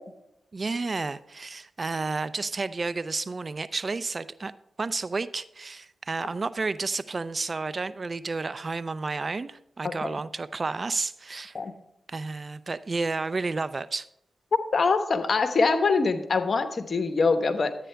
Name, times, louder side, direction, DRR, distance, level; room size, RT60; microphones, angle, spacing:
voice 1, 0.5-4.5 4.8-11.5 12.1-14.1, right 3 dB, 45° right, 15 dB, 0.5 m, -31 dB
voice 2, 9.8-10.2 11.5-11.7 14.7-17.7, left 4 dB, 55° left, 9 dB, 1.1 m, -24 dB
11.5 x 9.0 x 3.4 m, 0.82 s
cardioid pair, 45°, 0 cm